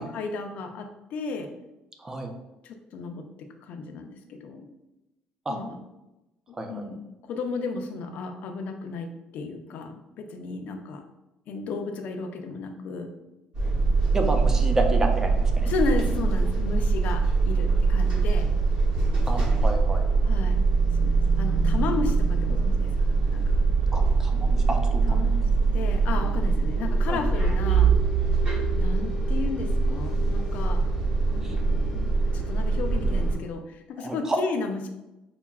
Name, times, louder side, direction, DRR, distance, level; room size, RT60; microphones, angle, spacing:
voice 1, 0.0-1.5 2.6-3.2 3.6-4.7 5.5-5.8 6.5-11.0 11.5-13.1 15.6-18.5 20.2-20.6 21.0-23.4 25.1-25.4 25.7-27.9 28.7-30.8 31.3-34.9, left 4 dB, 60° left, 5 dB, 0.5 m, -33 dB
voice 2, 2.0-2.3 5.5-5.6 6.5-6.8 14.1-15.7 19.3-20.0 23.9-25.3 27.1-27.2 31.4-31.6 34.0-34.4, right 2 dB, 20° right, 4 dB, 0.5 m, -30 dB
sound 1, 13.5-33.3, right 4 dB, 45° right, 1.2 m, -23 dB
5.6 x 2.2 x 2.3 m, 0.96 s
cardioid pair, 110°, 3 cm